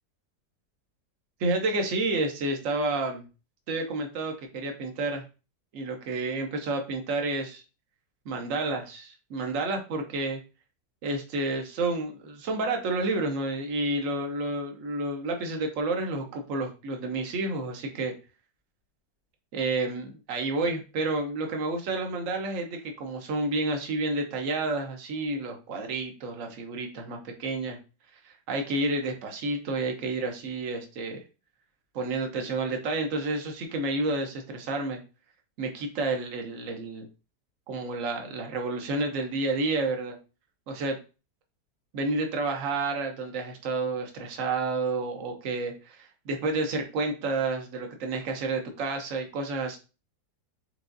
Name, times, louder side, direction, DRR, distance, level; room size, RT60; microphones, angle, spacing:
voice 1, 1.4-3.2 3.7-5.2 5.7-7.6 8.2-10.4 11.0-18.1 19.5-27.8 28.2-31.2 31.9-35.0 35.6-37.1 37.7-40.2 40.7-41.0 41.9-49.8, right 2 dB, 55° right, 4 dB, 1.2 m, -30 dB
4.8 x 3.7 x 2.6 m, 0.31 s
omnidirectional pair, 1.8 m